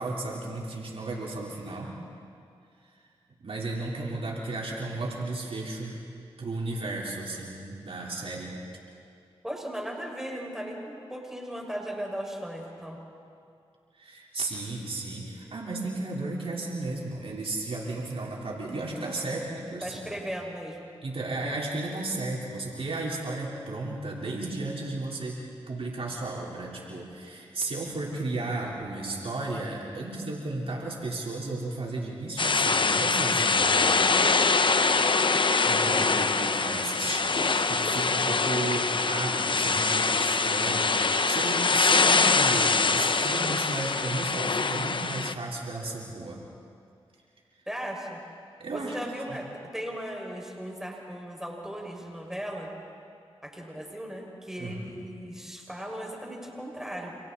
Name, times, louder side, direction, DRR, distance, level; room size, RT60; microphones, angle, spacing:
voice 1, 0.0-2.0 3.4-6.0 6.4-8.6 13.9-20.2 21.0-25.4 25.7-34.4 35.3-46.4 48.6-49.0 49.3-49.4 54.6-54.9, right 2 dB, 65° right, -3 dB, 4.3 m, -34 dB
voice 2, 9.4-13.0 19.2-20.9 47.7-48.2 48.7-49.5 49.7-52.7 53.4-57.1, equal, 5° right, 0 dB, 6.0 m, -37 dB
sound 1, 32.4-45.3, left 4 dB, 50° left, 1.0 m, -24 dB
30.0 x 27.5 x 4.3 m, 2.3 s
cardioid pair, 40°, 11 cm